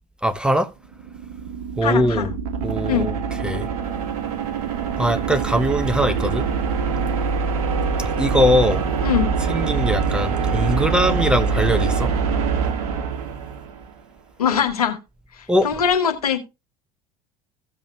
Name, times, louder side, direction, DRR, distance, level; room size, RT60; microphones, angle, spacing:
voice 1, 0.2-0.7 1.8-2.3 2.6-3.2 3.4-3.7 5.0-6.5 8.0-8.9 9.5-12.1 15.5-15.7, equal, 5° right, 0.8 m, -21 dB
sound 1, 0.9-14.0, right 5 dB, 70° right, 1.3 m, -24 dB
voice 2, 1.8-2.3 2.9-3.1 9.0-9.3 14.4-15.0 15.6-16.4, left 8 dB, 80° left, 1.3 m, -21 dB
15.5 x 7.1 x 2.3 m
figure-of-eight pair, 65°, 19 cm